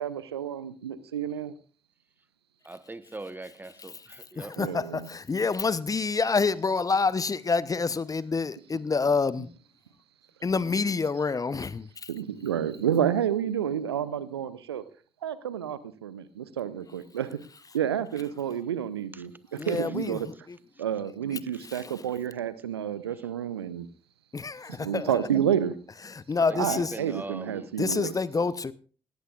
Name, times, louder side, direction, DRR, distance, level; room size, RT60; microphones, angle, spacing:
voice 1, 0.0-1.5 4.6-5.1 6.2-6.3 12.1-14.8 15.2-17.3 17.7-19.3 19.7-20.3 20.8-23.9 24.8-25.7 26.5-28.2, right 9 dB, 85° right, 0.5 m, -30 dB
voice 2, 2.6-4.6 19.1-19.2 26.5-27.7 28.0-28.1, right 2 dB, 15° right, 1.0 m, -41 dB
voice 3, 4.4-9.5 10.4-12.1 19.6-20.6 21.3-21.4 24.3-25.1 26.1-26.9 27.8-28.7, left 4 dB, 25° left, 0.7 m, -27 dB
18.5 x 15.0 x 2.4 m
figure-of-eight pair, 40°, 13 cm